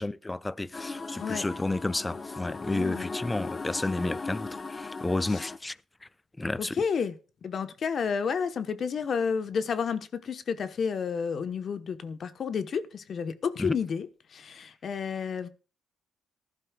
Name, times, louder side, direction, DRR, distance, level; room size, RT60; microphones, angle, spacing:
voice 1, 0.0-5.8 6.4-6.7 13.6-13.7, left 2 dB, 15° left, 0.5 m, -31 dB
sound 1, 0.7-5.6, left 3 dB, 30° left, 1.0 m, -38 dB
voice 2, 2.7-3.1 5.3-5.4 6.6-7.2 7.4-15.5, left 6 dB, 55° left, 1.1 m, -31 dB
19.0 x 11.5 x 2.4 m
cardioid pair, 90°, 0 cm